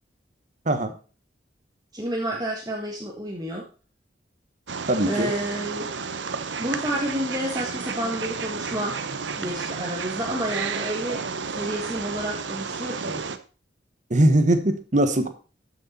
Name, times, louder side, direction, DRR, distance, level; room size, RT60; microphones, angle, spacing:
voice 1, 1.9-3.7 5.1-5.9 6.6-8.9 9.4-11.2 11.5-13.2, right 1 dB, 20° right, -1 dB, 1.6 m, -30 dB
Wild animals, 4.7-13.4, right 5 dB, 90° right, 0.9 m, -32 dB
voice 2, 4.9-5.3 14.1-15.3, right 1 dB, 45° right, 8 dB, 1.3 m, -20 dB
12.5 x 6.7 x 4.3 m, 0.36 s
head